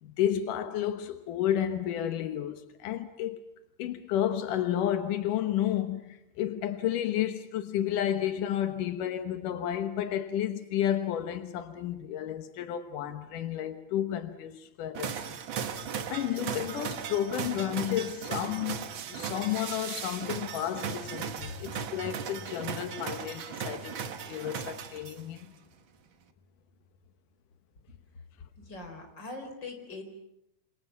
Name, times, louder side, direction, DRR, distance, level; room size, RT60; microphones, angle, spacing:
voice 1, 0.0-3.4 3.8-15.2 16.1-25.5, left 11 dB, 85° left, 2.8 m, -31 dB
sound 1, 14.9-25.4, right 7 dB, 55° right, 1.5 m, -37 dB
voice 2, 28.6-30.0, left 3 dB, 35° left, 5.0 m, -42 dB
28.0 x 27.0 x 6.0 m
omnidirectional pair, 3.6 m